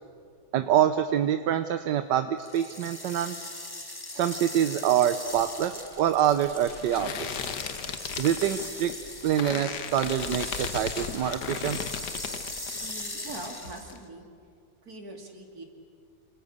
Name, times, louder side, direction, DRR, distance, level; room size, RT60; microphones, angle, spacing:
voice 1, 0.5-3.3 4.1-7.1 8.2-8.9 9.2-11.8, right 10 dB, 80° right, 9 dB, 1.5 m, -25 dB
sound 1, 2.4-14.0, left 2 dB, 15° left, 1.3 m, -40 dB
sound 2, 5.3-13.0 13.3-14.0, left 7 dB, 70° left, 1.7 m, -36 dB
voice 2, 12.8-14.3 14.8-15.6, right 2 dB, 55° right, 2 dB, 3.5 m, -42 dB
28.0 x 26.5 x 6.7 m, 2.2 s
omnidirectional pair, 1.9 m